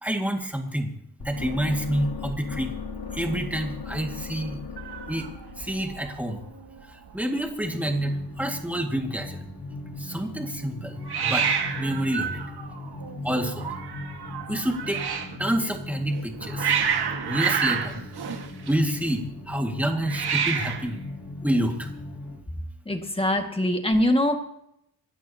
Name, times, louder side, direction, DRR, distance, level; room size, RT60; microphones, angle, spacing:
voice 1, 0.0-0.9 1.2-2.7 3.1-4.6 5.1-5.3 5.6-6.4 7.1-9.4 10.0-12.4 13.2-13.7 14.5-15.0 15.4-16.7 17.2-18.0 18.7-21.0 21.4-21.9, right 1 dB, 5° right, 3 dB, 2.0 m, -28 dB
sound 1, 1.2-7.3, left 5 dB, 70° left, 2.4 m, -38 dB
Hiss, 4.8-6.1 6.4-6.8 7.1-7.2 7.4-8.1 11.1-15.4 16.1-19.1 20.0-20.9, right 7 dB, 85° right, 1.8 m, -29 dB
sound 2, 7.6-22.4, left 2 dB, 90° left, 6.6 m, -38 dB
voice 2, 22.9-24.4, left 1 dB, 15° left, 4 dB, 1.9 m, -23 dB
27.0 x 12.5 x 2.9 m, 0.77 s
wide cardioid pair, 115°, 38 cm